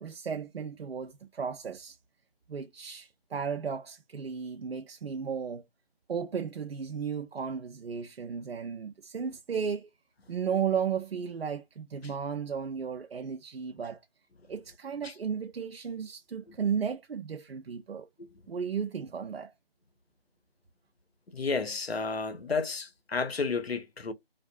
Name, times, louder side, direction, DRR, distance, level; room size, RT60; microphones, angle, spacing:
voice 1, 0.0-2.0 2.5-5.6 6.1-9.9 10.3-14.0 14.5-18.1 18.5-19.5, right 6 dB, 80° right, 0.5 m, -34 dB
voice 2, 21.3-24.1, left 4 dB, 90° left, 0.7 m, -32 dB
2.4 x 2.2 x 2.5 m
figure-of-eight pair, 165°, 30 cm